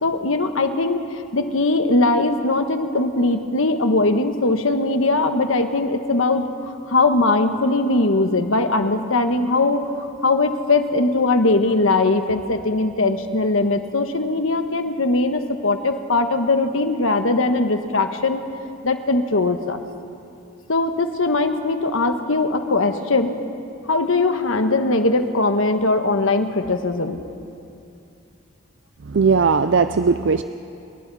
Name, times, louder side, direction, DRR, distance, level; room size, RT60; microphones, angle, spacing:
voice 1, 0.0-18.4 18.8-19.8 20.7-23.4 23.9-27.2, left 2 dB, 85° left, 7 dB, 1.3 m, -20 dB
voice 2, 29.1-30.4, right 5 dB, 65° right, 10 dB, 0.5 m, -18 dB
28.5 x 22.0 x 4.2 m, 2.6 s
head